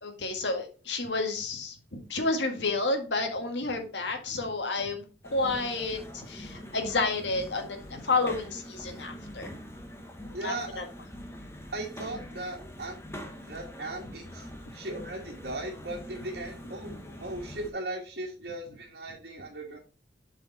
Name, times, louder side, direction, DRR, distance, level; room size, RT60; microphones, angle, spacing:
voice 1, 0.0-5.0 5.3-9.5 10.4-10.8, left 3 dB, 80° left, 5 dB, 1.7 m, -30 dB
sound 1, 5.2-17.7, equal, 15° left, 1.2 m, -44 dB
voice 2, 10.3-10.8 11.7-13.0 13.4-19.8, right 2 dB, 60° right, -3 dB, 1.6 m, -38 dB
7.7 x 4.9 x 4.0 m, 0.36 s
head